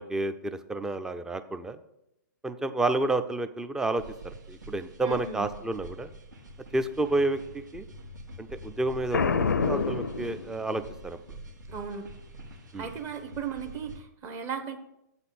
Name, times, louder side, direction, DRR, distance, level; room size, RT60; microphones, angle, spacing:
voice 1, 0.0-1.8 2.4-4.0 4.5-6.1 6.7-7.4 7.7-7.9 8.4-11.2 12.7-12.9, right 2 dB, 5° right, 11 dB, 0.4 m, -30 dB
sound 1, 4.0-14.0, right 1 dB, 75° right, 1.5 m, -46 dB
voice 2, 5.0-5.5 11.7-12.1 12.8-14.8, right 6 dB, 25° right, 6 dB, 0.8 m, -36 dB
Boom, 9.1-11.0, left 5 dB, 85° left, 0.5 m, -27 dB
7.6 x 4.1 x 6.9 m, 0.84 s
hypercardioid pair, 125°, 10 cm